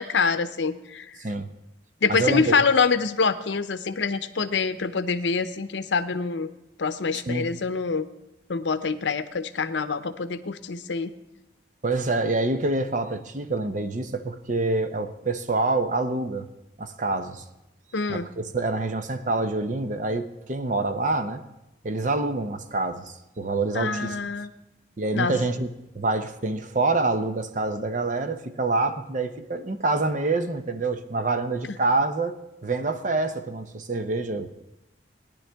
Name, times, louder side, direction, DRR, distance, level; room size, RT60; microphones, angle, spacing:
voice 1, 0.0-1.2 2.0-6.5 6.8-8.1 8.5-11.1 17.9-18.3 23.7-24.5 25.1-25.4 31.7-31.8, left 5 dB, 80° left, 12 dB, 0.6 m, -25 dB
voice 2, 1.2-1.5 2.1-2.5 7.3-7.5 11.8-16.5 16.8-17.4 18.1-21.4 21.8-24.2 25.0-25.7 25.9-34.5, right 2 dB, 45° right, 9 dB, 0.7 m, -26 dB
18.5 x 10.0 x 3.4 m, 0.92 s
head